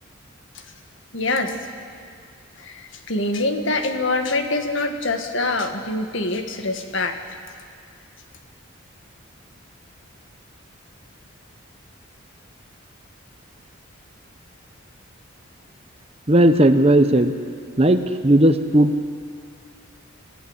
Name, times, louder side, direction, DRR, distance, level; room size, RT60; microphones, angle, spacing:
voice 1, 1.1-1.5 2.6-7.2, left 2 dB, 65° left, 6 dB, 1.8 m, -24 dB
voice 2, 16.3-17.3 17.8-19.1, right 1 dB, 30° right, 9 dB, 0.9 m, -16 dB
27.5 x 15.5 x 8.2 m, 2.2 s
head